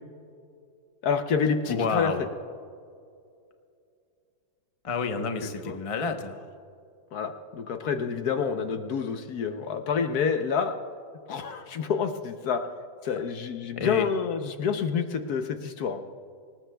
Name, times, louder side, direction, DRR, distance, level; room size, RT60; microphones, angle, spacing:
voice 1, 1.0-2.1 5.2-5.8 7.1-10.8 11.3-12.6 13.0-16.0, left 6 dB, 60° left, 7 dB, 1.1 m, -28 dB
voice 2, 1.7-2.3 4.8-6.4 13.8-14.1, left 4 dB, 35° left, 5 dB, 0.5 m, -29 dB
25.5 x 19.5 x 2.3 m, 2.4 s
omnidirectional pair, 2.1 m